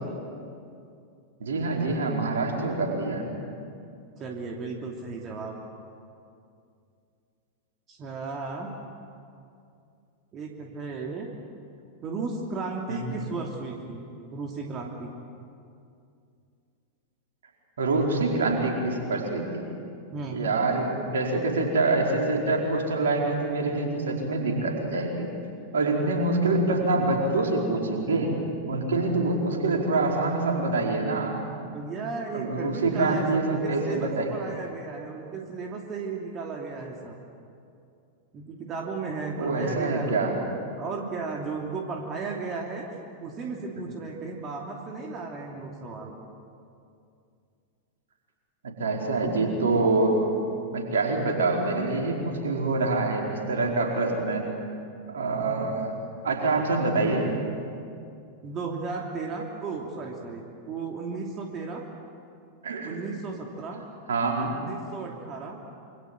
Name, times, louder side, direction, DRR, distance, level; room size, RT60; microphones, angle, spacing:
voice 1, 1.4-3.2 12.9-13.3 17.8-19.6 20.3-25.3 25.7-28.3 28.7-31.4 32.3-34.3 39.4-40.4 48.8-50.2 50.7-54.4 55.1-55.9 56.2-57.3 62.6-63.0 64.1-64.5, right 3 dB, 65° right, 0 dB, 4.8 m, -25 dB
voice 2, 4.2-5.6 7.9-8.7 10.3-11.3 12.0-14.0 14.3-15.1 20.1-20.4 31.7-37.2 38.3-42.9 43.2-46.2 55.4-55.8 58.4-61.9 62.8-63.8 64.7-65.6, right 4 dB, 30° right, 0 dB, 2.9 m, -35 dB
27.5 x 25.5 x 7.7 m, 2.5 s
figure-of-eight pair, 90°, 0 cm